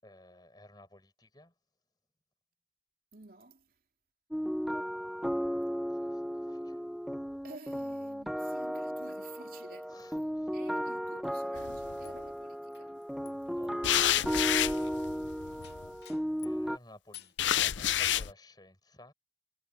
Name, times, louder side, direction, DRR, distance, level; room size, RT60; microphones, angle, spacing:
voice 1, 0.0-1.5 5.9-6.2 6.5-6.8 8.3-8.6 9.9-10.5 13.5-13.7 16.4-19.1, left 1 dB, 20° left, 4.9 m, -55 dB
voice 2, 3.1-3.7 7.4-10.2 10.5-13.0, right 3 dB, 50° right, 3.2 m, -52 dB
sound 1, 4.3-16.8, equal, ahead, 0.6 m, -35 dB
sound 2, 11.6-12.1 13.8-15.9 17.4-18.3, left 11 dB, 75° left, 0.6 m, -29 dB
sound 3, 12.0-16.7 17.1-17.7, left 12 dB, 60° left, 2.8 m, -56 dB
head